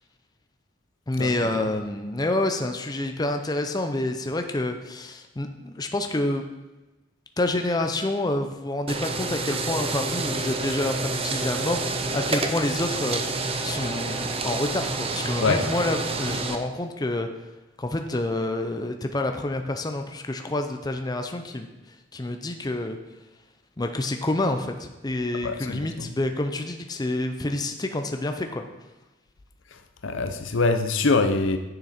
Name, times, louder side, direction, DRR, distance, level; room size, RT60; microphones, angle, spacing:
voice 1, 1.1-6.5 7.4-11.9 12.1-13.2 13.6-17.3 17.8-21.7 22.1-23.0 23.8-28.6, left 2 dB, 20° left, 5 dB, 0.6 m, -28 dB
sound 1, 8.9-16.6, right 3 dB, 30° right, 0.7 m, -28 dB
voice 2, 25.4-25.8 30.0-31.6, left 3 dB, 85° left, 7 dB, 0.8 m, -23 dB
10.0 x 6.2 x 4.3 m, 1.1 s
head